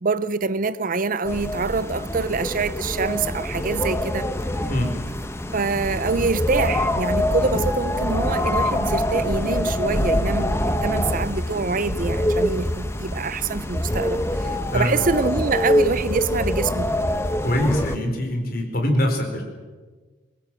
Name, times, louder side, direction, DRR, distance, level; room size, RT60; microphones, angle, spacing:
voice 1, 0.0-4.3 5.5-17.0, right 4 dB, 45° right, 0.6 m, -25 dB
sound 1, 1.2-18.0, left 1 dB, 15° left, 1.0 m, -25 dB
voice 2, 17.4-19.4, left 1 dB, 45° left, 4.8 m, -23 dB
23.5 x 20.0 x 7.7 m
head